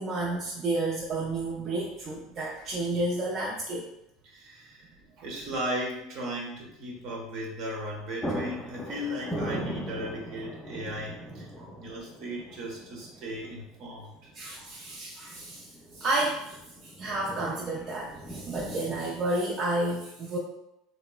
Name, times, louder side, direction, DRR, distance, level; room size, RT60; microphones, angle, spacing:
voice 1, 0.0-3.8 11.6-11.7 14.3-16.6 16.8-20.4, right 2 dB, 45° right, -4 dB, 0.4 m, -31 dB
sound 1, 3.7-3.8 7.4-7.6 7.9-19.3, equal, 10° left, 0.5 m, -40 dB
voice 2, 4.2-11.5 11.7-14.3, equal, 65° right, -2 dB, 0.9 m, -36 dB
3.0 x 2.0 x 2.3 m, 0.85 s
supercardioid pair, 105°, 0 cm